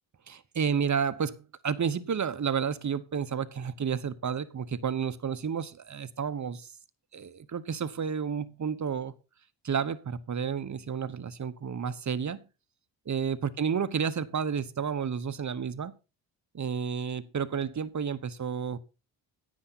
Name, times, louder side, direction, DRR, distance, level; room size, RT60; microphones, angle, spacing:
voice 1, 0.3-6.7 7.1-9.1 9.6-12.4 13.1-15.9 16.5-18.8, right 7 dB, 35° right, 13 dB, 1.0 m, -31 dB
10.0 x 9.5 x 4.1 m, 0.31 s
cardioid pair, 70°, 48 cm